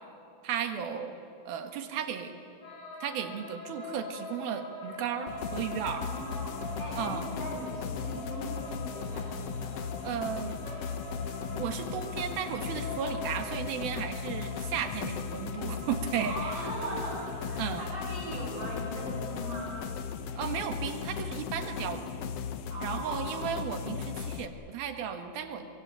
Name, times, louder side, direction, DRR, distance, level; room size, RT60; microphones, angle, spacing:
voice 1, 0.4-1.2 1.5-2.3 3.0-6.1 6.9-7.3 10.0-10.6 11.5-16.6 17.6-17.9 20.3-22.3 22.8-25.7, right 8 dB, 85° right, 7 dB, 3.4 m, -34 dB
sound 1, 2.6-19.6, left 1 dB, 45° left, 7.5 m, -44 dB
sound 2, 5.3-24.5, left 7 dB, 70° left, 1.5 m, -37 dB
voice 2, 5.9-9.8 16.2-19.8 22.7-23.5, right 1 dB, 55° right, -7 dB, 8.4 m, -40 dB
Piano, 10.7-12.6, right 4 dB, 35° right, 3.8 m, -52 dB
24.0 x 22.5 x 8.8 m, 2.9 s
omnidirectional pair, 4.1 m